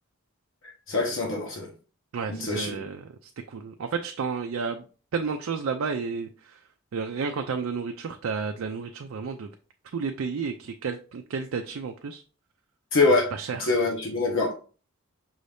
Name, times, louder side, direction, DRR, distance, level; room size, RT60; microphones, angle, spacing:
voice 1, 0.9-1.7 2.3-2.7 12.9-13.3 13.6-14.6, left 3 dB, 65° left, 1.0 m, -24 dB
voice 2, 2.1-4.8 5.1-6.6 6.9-9.5 9.9-12.2 13.3-13.7, right 5 dB, 75° right, 0.4 m, -31 dB
5.5 x 2.6 x 3.3 m
head